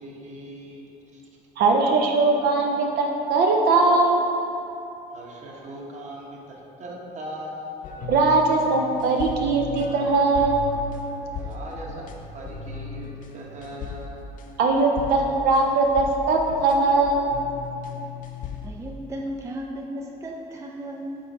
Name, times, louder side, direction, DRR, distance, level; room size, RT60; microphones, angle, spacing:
voice 1, 0.0-0.9 5.1-6.3 6.8-7.7 11.4-11.9 12.3-13.1 13.3-14.3, right 1 dB, 45° right, -2 dB, 1.2 m, -39 dB
voice 2, 1.6-4.2 8.1-10.6 14.6-17.3, right 3 dB, 70° right, 1 dB, 0.6 m, -20 dB
sound 1, 7.8-18.7, left 5 dB, 50° left, 0.5 m, -37 dB
voice 3, 18.6-21.2, equal, 15° right, 1 dB, 0.4 m, -35 dB
5.4 x 3.8 x 5.2 m, 2.9 s
cardioid pair, 110°, 17 cm